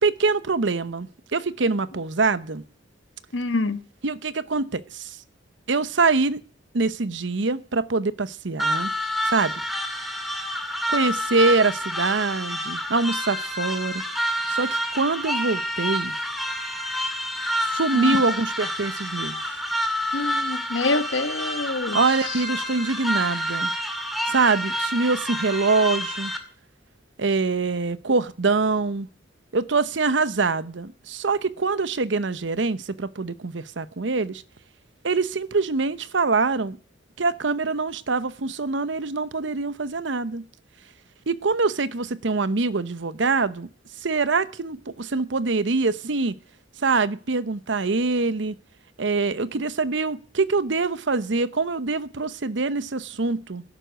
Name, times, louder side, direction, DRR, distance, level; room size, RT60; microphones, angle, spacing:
voice 1, 0.0-2.6 4.0-5.2 5.7-6.4 6.7-8.9 9.2-9.5 10.9-14.0 14.5-16.1 17.6-19.6 21.9-23.7 24.2-26.3 27.2-29.1 29.5-34.4 35.0-36.8 37.2-40.4 41.3-43.7 44.0-46.4 46.8-48.5 49.0-53.6, right 3 dB, 75° right, 0.8 m, -24 dB
voice 2, 3.3-3.8 17.9-18.2 20.1-22.0, left 3 dB, 80° left, 1.2 m, -26 dB
sound 1, 8.6-26.4, equal, ahead, 2.1 m, -28 dB
12.5 x 11.5 x 8.0 m
head